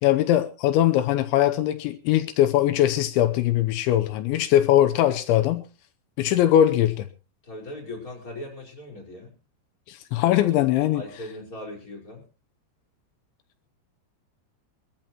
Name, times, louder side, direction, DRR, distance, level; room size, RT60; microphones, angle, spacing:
voice 1, 0.0-5.6 6.2-7.1 9.9-11.0, left 12 dB, 85° left, 10 dB, 3.2 m, -21 dB
voice 2, 7.4-9.3 10.9-12.2, left 1 dB, 20° left, 0 dB, 5.2 m, -39 dB
24.5 x 13.5 x 3.0 m, 0.33 s
omnidirectional pair, 5.2 m